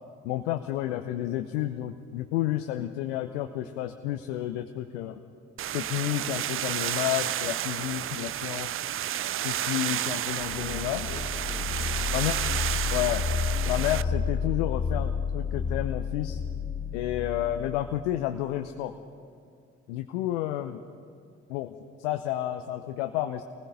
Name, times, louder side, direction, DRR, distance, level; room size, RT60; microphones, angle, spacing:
voice 1, 0.2-5.2 5.7-8.7 9.4-11.2 12.1-12.3 12.9-13.3 13.7-16.4 16.9-18.9 19.9-20.8 21.5-23.4, left 13 dB, 75° left, 6 dB, 0.8 m, -31 dB
sound 1, 5.6-14.0, right 11 dB, 40° right, 0.5 m, -31 dB
sound 2, 10.5-18.1, left 5 dB, 25° left, 2.6 m, -31 dB
26.5 x 19.5 x 5.3 m, 2.6 s
hypercardioid pair, 50°, 35 cm